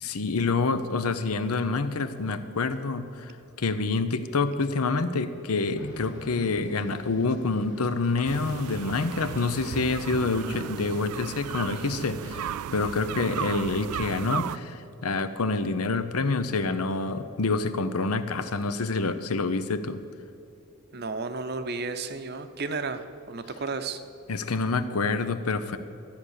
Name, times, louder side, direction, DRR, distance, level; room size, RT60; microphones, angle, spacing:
voice 1, 0.0-3.3 3.6-20.0 24.3-25.8, left 3 dB, 85° left, 11 dB, 0.8 m, -27 dB
sound 1, 5.7-10.9, equal, 50° left, 1.5 m, -44 dB
sound 2, 8.2-14.6, right 9 dB, 85° right, 0.3 m, -35 dB
voice 2, 20.9-24.0, right 4 dB, 45° right, 9 dB, 0.7 m, -33 dB
13.5 x 8.8 x 6.5 m, 2.8 s
head